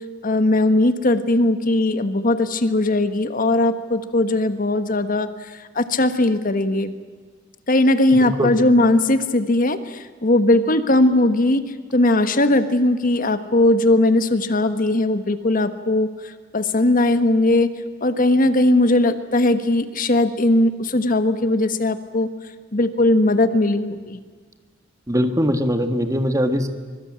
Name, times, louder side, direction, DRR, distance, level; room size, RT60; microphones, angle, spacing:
voice 1, 0.2-6.9 7.7-11.6 11.9-17.7 18.0-22.3 22.7-24.2, left 2 dB, 45° left, 11 dB, 1.3 m, -19 dB
voice 2, 8.1-8.5 25.1-26.7, equal, 15° right, 8 dB, 1.7 m, -21 dB
25.0 x 22.5 x 8.8 m, 1.5 s
head